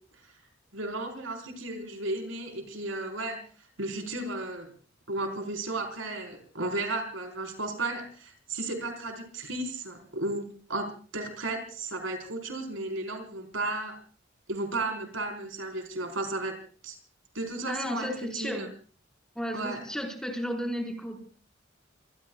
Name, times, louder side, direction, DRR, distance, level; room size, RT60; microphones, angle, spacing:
voice 1, 0.7-4.7 5.1-10.4 10.7-14.0 14.5-16.5 16.8-17.0 17.3-18.1 18.4-18.7 19.5-19.8, right 2 dB, 85° right, 4 dB, 4.7 m, -34 dB
voice 2, 17.7-18.6 19.4-21.2, equal, 5° left, 2 dB, 5.2 m, -33 dB
27.0 x 20.5 x 2.4 m, 0.40 s
head